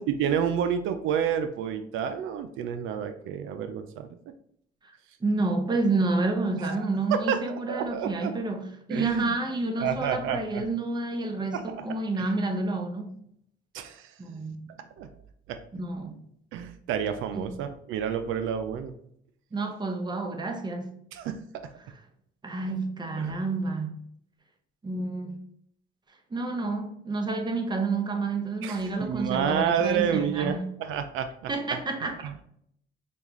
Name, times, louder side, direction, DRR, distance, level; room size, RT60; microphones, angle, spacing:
voice 1, 0.0-4.1 6.6-6.8 7.1-8.3 8.9-9.3 9.8-10.6 11.5-11.9 12.2-12.3 13.7-14.1 15.0-15.1 15.5-15.6 16.5-18.9 21.1-21.4 23.2-23.4 28.6-31.5 32.0-32.4, right 8 dB, 85° right, 0.4 m, -29 dB
voice 2, 5.2-13.1 14.2-14.7 15.8-16.2 17.3-17.5 19.5-20.9 22.4-24.0 24.8-25.4 26.3-30.7 31.5-32.2, right 3 dB, 20° right, 0.7 m, -29 dB
5.2 x 2.4 x 3.0 m
cardioid pair, 90°, 20 cm